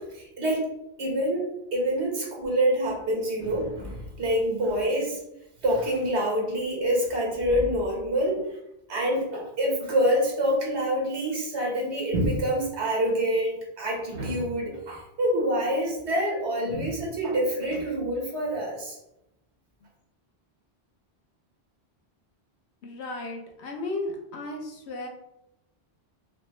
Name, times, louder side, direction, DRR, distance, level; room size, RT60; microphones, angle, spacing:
voice 1, 0.1-0.7 1.0-5.2 5.6-8.6 8.9-19.0, equal, 90° right, -2 dB, 1.5 m, -26 dB
voice 2, 22.8-25.1, left 2 dB, 80° left, 1 dB, 1.0 m, -34 dB
4.9 x 2.1 x 3.1 m, 0.86 s
omnidirectional pair, 1.1 m